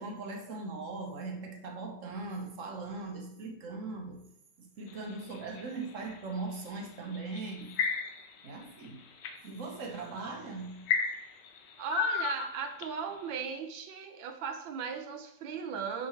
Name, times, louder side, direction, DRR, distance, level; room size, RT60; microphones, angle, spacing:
voice 1, 0.0-4.2 4.6-7.8 8.4-9.0 9.4-10.8, right 3 dB, 55° right, 2 dB, 1.0 m, -40 dB
sound 1, 4.9-6.2 7.1-8.4 8.8-9.3 10.0-10.2 10.9-13.1, left 6 dB, 70° left, 1.2 m, -32 dB
voice 2, 11.8-16.1, right 6 dB, 90° right, 5 dB, 1.5 m, -37 dB
4.5 x 3.7 x 5.5 m, 0.79 s
omnidirectional pair, 2.0 m